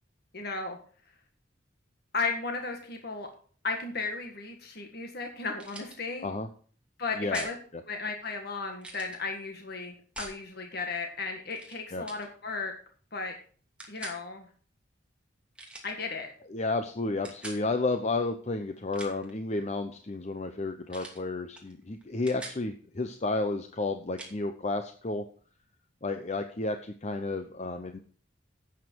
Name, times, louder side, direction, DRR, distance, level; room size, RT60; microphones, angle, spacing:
voice 1, 0.3-0.8 2.1-3.3 3.6-6.3 7.0-7.6 7.9-12.7 13.1-13.4 13.9-14.5 15.8-16.3, left 4 dB, 55° left, 3 dB, 1.7 m, -35 dB
sound 1, 5.6-6.0 7.3-7.6 8.8-9.2 10.2-10.4 11.5-11.8 12.1-12.3 13.8-14.2 15.6-15.9 17.2-17.6 18.8-19.3 20.9-21.2 21.6-21.7 22.0-22.6 24.2-24.3, right 2 dB, 5° right, 2.6 m, -43 dB
voice 2, 7.2-7.5 11.9-12.1 16.5-25.2 26.0-28.0, left 2 dB, 35° left, 7 dB, 0.8 m, -32 dB
11.5 x 8.4 x 4.6 m, 0.43 s
head